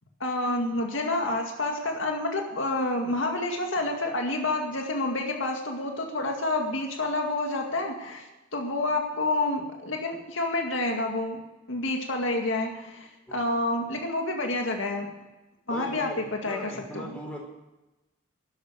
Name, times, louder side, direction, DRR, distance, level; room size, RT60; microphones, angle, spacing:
voice 1, 0.2-11.4 11.7-15.1 15.7-16.1 16.4-16.6 16.9-17.1, left 2 dB, 70° left, 2 dB, 2.1 m, -28 dB
voice 2, 15.7-17.4, equal, 5° left, -1 dB, 4.2 m, -40 dB
13.0 x 11.5 x 6.7 m, 1.0 s
head